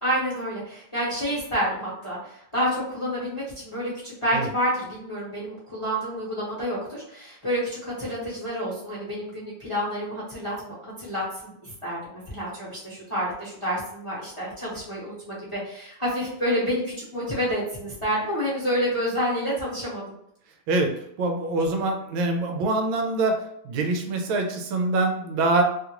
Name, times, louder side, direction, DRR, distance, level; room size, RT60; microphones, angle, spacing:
voice 1, 0.0-20.1, equal, 20° left, -8 dB, 0.8 m, -29 dB
voice 2, 21.2-23.4 23.6-25.6, right 2 dB, 85° right, 3 dB, 1.4 m, -24 dB
3.4 x 2.4 x 2.9 m, 0.74 s
omnidirectional pair, 2.2 m